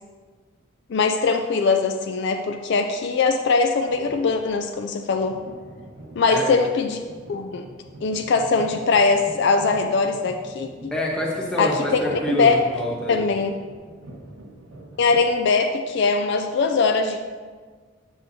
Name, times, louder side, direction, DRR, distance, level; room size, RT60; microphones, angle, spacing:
voice 1, 0.9-5.4 6.2-7.0 7.3-7.7 8.0-10.9 11.6-12.6 13.1-13.6 15.0-17.2, left 4 dB, 55° left, 6 dB, 0.3 m, -21 dB
sound 1, 3.8-4.6 5.2-15.2, right 1 dB, 80° right, 1.2 m, -44 dB
voice 2, 10.9-13.2, left 1 dB, 5° left, -4 dB, 1.1 m, -27 dB
7.6 x 7.1 x 2.7 m, 1.5 s
head